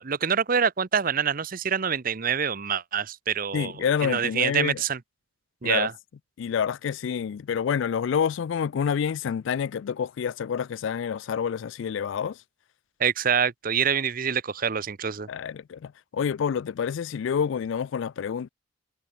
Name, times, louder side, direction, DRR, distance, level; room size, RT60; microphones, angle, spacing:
voice 1, 0.0-3.7 4.0-5.0 5.6-5.9 13.0-15.3, right 7 dB, 45° right, 0.7 m, -26 dB
voice 2, 3.5-4.8 5.6-5.9 6.4-12.4 15.3-18.5, left 7 dB, 65° left, 0.3 m, -28 dB
head